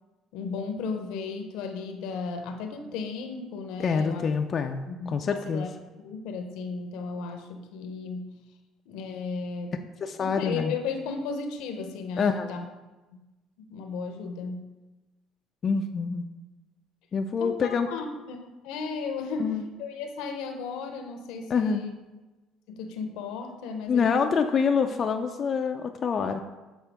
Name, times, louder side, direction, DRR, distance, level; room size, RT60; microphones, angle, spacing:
voice 1, 0.3-4.2 4.6-5.7 6.0-8.4 8.9-9.8 10.2-12.6 13.6-14.7 17.4-21.9 22.7-24.1, left 4 dB, 80° left, 5 dB, 0.6 m, -35 dB
voice 2, 3.8-5.6 10.0-10.7 12.2-12.7 15.6-16.3 17.1-17.9 19.4-19.6 21.5-21.8 23.9-26.4, left 5 dB, 45° left, 5 dB, 0.3 m, -26 dB
7.1 x 4.4 x 3.4 m, 1.1 s
supercardioid pair, 80°, 0 cm